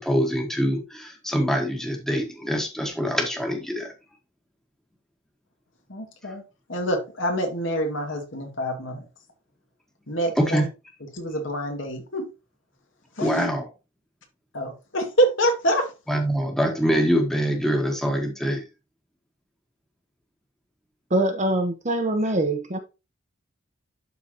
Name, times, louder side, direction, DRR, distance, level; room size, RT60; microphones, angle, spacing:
voice 1, 0.0-3.9 10.3-10.6 13.2-13.7 16.1-18.6, equal, ahead, 1.4 m, -24 dB
voice 2, 5.9-6.4 6.7-9.0 10.1-10.7 11.1-12.3 13.2-13.5 14.5-15.9, equal, 70° left, 2.1 m, -26 dB
voice 3, 21.1-22.8, right 1 dB, 35° right, 1.0 m, -23 dB
12.0 x 4.0 x 2.9 m
head